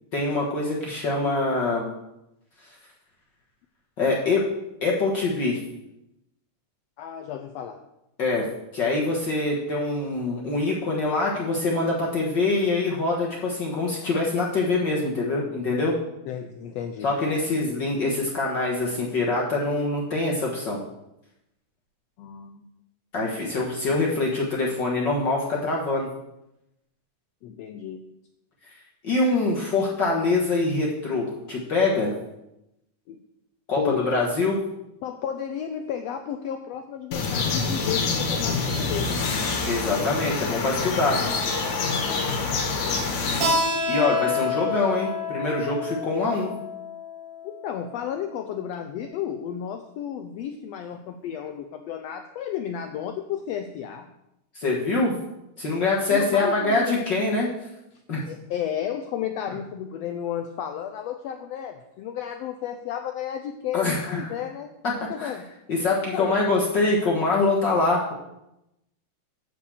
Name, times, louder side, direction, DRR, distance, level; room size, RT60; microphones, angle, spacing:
voice 1, 0.1-1.9 2.7-2.8 4.0-4.5 4.8-5.6 8.2-8.5 8.7-16.0 17.0-20.8 23.1-26.1 29.0-32.1 33.7-34.6 39.7-41.2 43.8-46.5 54.5-55.1 55.6-57.5 58.1-58.2 63.7-64.3 65.2-65.3 65.7-68.1, left 3 dB, 50° left, -3 dB, 1.4 m, -24 dB
voice 2, 7.0-7.8 16.3-17.1 22.2-22.6 27.4-28.0 33.1-33.2 33.7-34.1 35.0-39.3 47.4-54.1 56.1-56.9 58.2-64.7 65.1-65.5 66.1-66.3, left 9 dB, 85° left, 6 dB, 1.4 m, -32 dB
sound 1, 37.1-43.5, left 4 dB, 70° left, 2.7 m, -26 dB
Keyboard (musical), 43.4-48.7, left 3 dB, 80° right, 3.2 m, -29 dB
9.5 x 4.8 x 6.9 m, 0.87 s
omnidirectional pair, 3.5 m